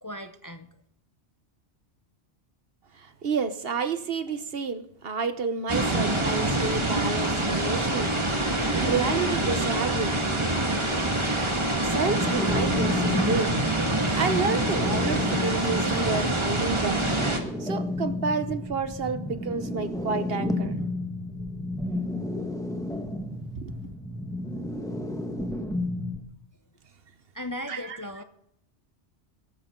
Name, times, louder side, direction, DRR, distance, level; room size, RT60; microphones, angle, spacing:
voice 1, 0.0-0.7 27.3-28.2, left 1 dB, 20° left, 8 dB, 0.7 m, -37 dB
voice 2, 2.9-8.2 8.8-10.2 10.7-10.8 11.8-13.9 14.2-17.0 17.6-20.8 23.5-23.8 27.7-28.0, right 5 dB, 55° right, 10 dB, 1.2 m, -30 dB
sound 1, 5.7-17.4, right 1 dB, 25° right, 1.9 m, -26 dB
sound 2, 12.2-26.2, left 2 dB, 5° left, 1.3 m, -32 dB
22.5 x 12.0 x 3.8 m, 0.74 s
omnidirectional pair, 1.2 m